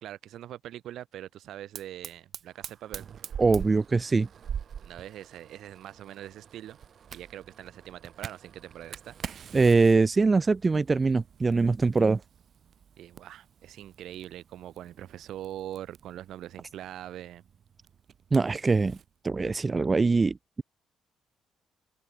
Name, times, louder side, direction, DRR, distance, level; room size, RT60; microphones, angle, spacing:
voice 1, 0.0-3.1 4.8-6.8 7.1-9.6 13.0-17.4, right 12 dB, 75° right, 2.1 m, -42 dB
Fire, 1.7-19.1, right 8 dB, 55° right, 5.8 m, -45 dB
voice 2, 3.4-4.3 9.5-12.2 18.3-19.0 19.2-20.6, right 4 dB, 30° right, 0.4 m, -23 dB
open air
cardioid pair, 90°, 0 cm